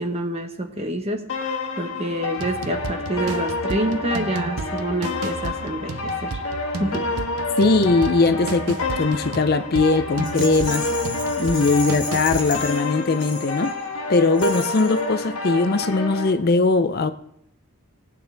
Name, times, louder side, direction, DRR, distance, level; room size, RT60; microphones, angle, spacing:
voice 1, 0.0-1.5 1.8-6.4 6.8-7.0, right 1 dB, 30° right, 1.2 m, -27 dB
sound 1, 1.3-16.3, left 3 dB, 65° left, 1.7 m, -28 dB
sound 2, 2.4-12.7, right 4 dB, 80° right, 0.6 m, -34 dB
voice 2, 7.6-10.9 11.4-13.7 14.1-17.1, left 3 dB, 45° left, 0.5 m, -20 dB
Rattle, 10.2-13.9 14.3-15.0, left 3 dB, 20° left, 2.5 m, -34 dB
19.0 x 8.6 x 3.4 m
head